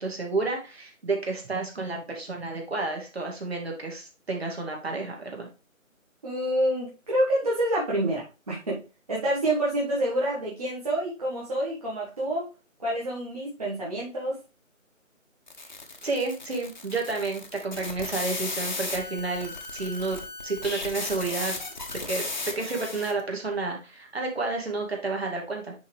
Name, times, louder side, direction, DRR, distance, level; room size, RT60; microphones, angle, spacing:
voice 1, 0.0-5.5 16.0-20.2 20.4-21.6 22.1-25.7, right 3 dB, 50° right, 1 dB, 2.3 m, -30 dB
voice 2, 6.2-8.8 9.1-12.5 12.8-14.3, right 1 dB, 30° right, -6 dB, 1.6 m, -27 dB
sound 1, 15.5-23.2, left 2 dB, 35° left, 1.0 m, -35 dB
10.0 x 3.6 x 3.2 m, 0.30 s
figure-of-eight pair, 165°, 40 cm